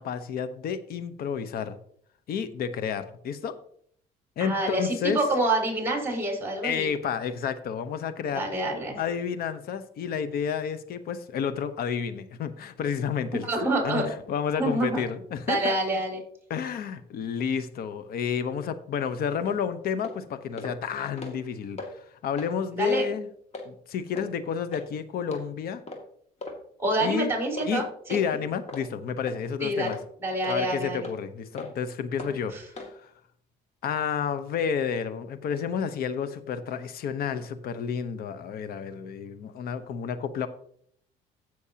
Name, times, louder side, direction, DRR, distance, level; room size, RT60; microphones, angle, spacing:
voice 1, 0.0-1.7 2.3-3.5 4.4-5.2 6.6-8.5 9.0-15.8 16.5-21.8 22.2-23.3 23.6-25.8 27.0-27.3 27.7-27.8 28.1-30.0 30.5-32.5 32.8-33.1 33.8-40.5, left 7 dB, 60° left, 12 dB, 1.0 m, -30 dB
voice 2, 4.4-6.9 8.3-9.0 13.4-14.1 14.6-15.0 15.5-16.2 22.8-23.1 26.8-27.8 28.1-28.2 29.6-29.9 30.2-31.1 32.2-32.6, right 1 dB, 15° right, 1 dB, 4.5 m, -27 dB
sound 1, 19.4-19.6 20.0-20.2 20.6-20.8 21.1-21.5 21.8-21.9 22.3-22.5 22.9-23.1 23.5-23.7 24.2-24.3 24.7-24.9 25.3-25.4 25.9-26.0 26.4-26.6 27.0-27.2 27.6-27.7 28.1-28.3 28.7-28.9 29.3-29.4 29.9-30.0 30.4-30.6 31.0-31.2 31.6-31.7 32.2-32.3 32.8-32.9, left 3 dB, 40° left, 2.3 m, -38 dB
15.5 x 6.4 x 2.9 m, 0.62 s
cardioid pair, 95°, 17 cm